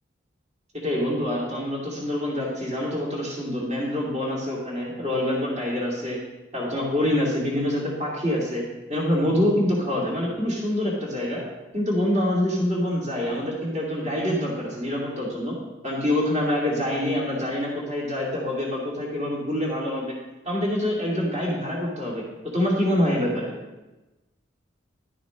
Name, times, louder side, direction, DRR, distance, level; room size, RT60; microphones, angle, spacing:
voice 1, 0.7-6.2 6.5-11.4 11.7-15.6 15.8-20.1 20.4-22.2 22.5-23.5, left 1 dB, 40° right, -4 dB, 2.4 m, -26 dB
11.5 x 9.3 x 3.1 m, 1.1 s
head